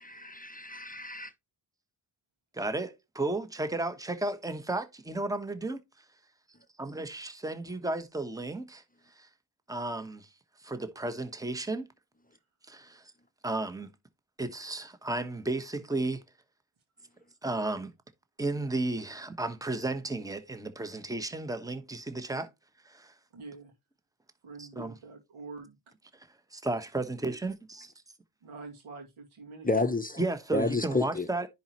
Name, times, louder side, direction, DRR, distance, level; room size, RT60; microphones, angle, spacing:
voice 1, 0.0-1.3 29.6-30.2 30.5-31.3, left 3 dB, 15° left, 0.8 m, -30 dB
voice 2, 2.5-6.0 6.8-9.3 9.7-10.3 10.6-11.9 12.7-13.1 13.4-13.9 14.4-16.2 17.4-17.9 18.4-22.5 22.8-23.1 24.6-25.0 26.1-27.9 30.2-31.5, right 2 dB, 5° right, 1.1 m, -34 dB
voice 3, 23.3-23.7 24.4-25.8 28.4-29.7, right 4 dB, 85° right, 2.4 m, -45 dB
10.0 x 4.1 x 3.0 m
cardioid pair, 55°, 48 cm